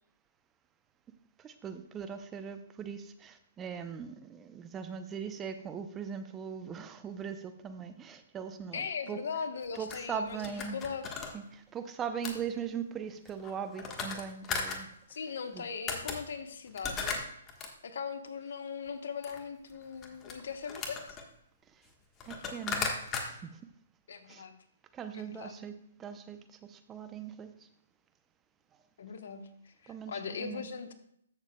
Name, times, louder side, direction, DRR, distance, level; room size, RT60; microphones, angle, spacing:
voice 1, 1.4-9.4 9.7-10.8 11.3-14.9 15.5-15.7 22.3-23.5 24.3-24.4 24.9-27.5 29.9-30.7, right 7 dB, 20° right, 9 dB, 0.6 m, -40 dB
voice 2, 8.7-11.1 15.1-17.2 17.8-21.2 24.1-24.6 25.1-25.6 29.0-30.9, left 6 dB, 65° left, 8 dB, 1.1 m, -39 dB
sound 1, 9.6-11.3 12.2-12.4 13.3-14.8 15.6-15.7 15.9-16.2 16.7-17.7 19.2-19.4 19.8-21.2 21.9-22.0 22.2-23.2, left 5 dB, 20° left, 1.3 m, -36 dB
14.5 x 6.7 x 2.3 m, 0.72 s
hypercardioid pair, 135°, 0 cm